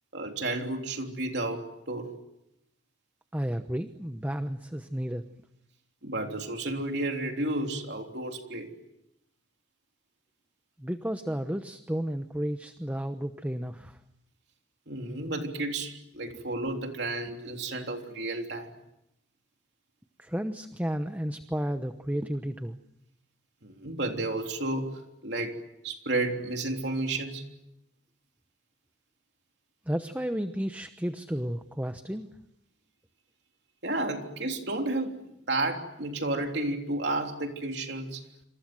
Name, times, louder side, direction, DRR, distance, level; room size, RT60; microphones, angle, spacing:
voice 1, 0.1-2.1 6.0-8.7 14.9-18.7 23.6-25.6 25.8-27.4 33.8-38.2, right 2 dB, 70° right, 3 dB, 3.5 m, -32 dB
voice 2, 3.3-5.2 10.8-14.0 20.2-22.8 29.9-32.3, equal, 10° right, 8 dB, 1.0 m, -32 dB
28.0 x 27.5 x 7.8 m, 0.84 s
head